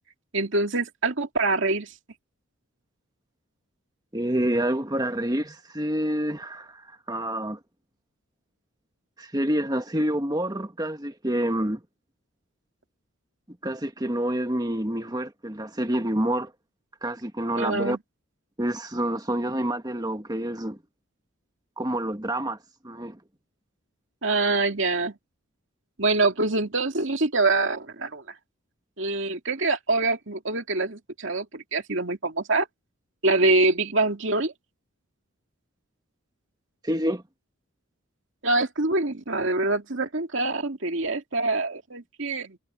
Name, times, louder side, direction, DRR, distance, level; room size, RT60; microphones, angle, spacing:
voice 1, 0.3-1.9 17.6-18.0 24.2-25.1 26.0-28.2 29.0-32.7 33.2-34.5 38.4-42.6, right 2 dB, 55° right, 2.5 m, -25 dB
voice 2, 4.1-7.6 9.2-11.8 13.6-16.5 17.0-18.0 18.6-20.8 21.8-22.6 22.8-23.2 36.8-37.2, right 1 dB, 20° right, 1.4 m, -27 dB
head